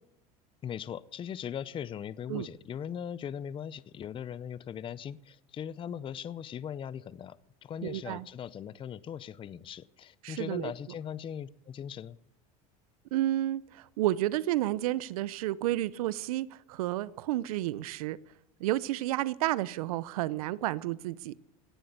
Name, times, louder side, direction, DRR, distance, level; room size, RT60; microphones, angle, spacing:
voice 1, 0.6-12.2, left 8 dB, 30° left, 19 dB, 0.6 m, -39 dB
voice 2, 7.8-8.2 10.2-10.7 13.1-18.2 18.6-21.3, right 15 dB, 90° right, 20 dB, 0.7 m, -31 dB
17.5 x 7.8 x 9.6 m, 0.82 s
supercardioid pair, 110°, 18 cm